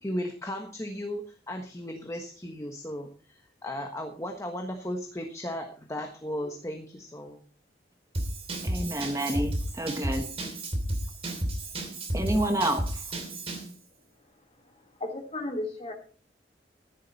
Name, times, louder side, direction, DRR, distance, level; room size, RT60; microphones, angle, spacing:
voice 1, 0.0-7.4, left 1 dB, 20° left, 4 dB, 1.3 m, -36 dB
Drum kit / Drum, 8.1-13.7, right 1 dB, 35° right, 3.0 m, -32 dB
voice 2, 8.6-10.3 12.1-13.0, right 1 dB, 20° right, 6 dB, 1.2 m, -29 dB
voice 3, 14.1-15.9, left 1 dB, 35° left, 3 dB, 2.8 m, -36 dB
14.5 x 10.5 x 4.2 m, 0.40 s
head